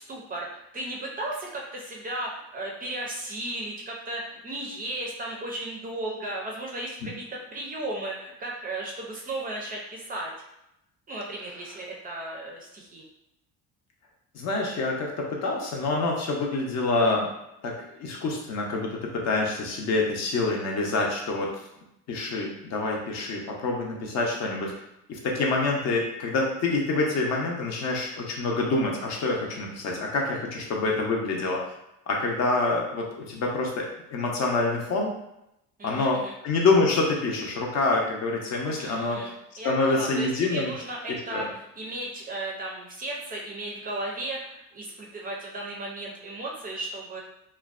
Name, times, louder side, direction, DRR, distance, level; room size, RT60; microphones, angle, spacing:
voice 1, 0.0-10.3 11.1-13.1 35.8-36.3 38.8-41.5 41.8-47.2, right 1 dB, 25° right, -2 dB, 0.4 m, -35 dB
voice 2, 14.3-17.3 17.6-21.5 22.1-24.7 25.1-31.6 32.1-35.1 35.8-39.2 39.6-40.7 41.3-41.5, left 3 dB, 50° left, -1 dB, 0.6 m, -26 dB
2.4 x 2.1 x 2.4 m, 0.85 s
cardioid pair, 125°, 33 cm